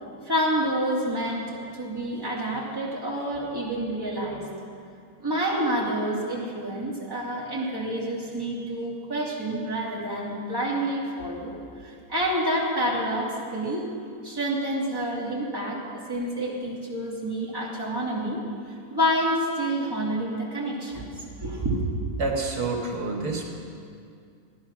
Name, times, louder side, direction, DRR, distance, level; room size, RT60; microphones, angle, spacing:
voice 1, 0.2-4.5 5.2-11.5 11.8-13.8 14.2-18.4 18.9-21.1 21.4-21.8, right 1 dB, 15° right, -6 dB, 2.7 m, -28 dB
voice 2, 22.2-23.5, right 3 dB, 80° right, 0 dB, 2.1 m, -28 dB
16.0 x 11.0 x 6.0 m, 2.4 s
omnidirectional pair, 1.7 m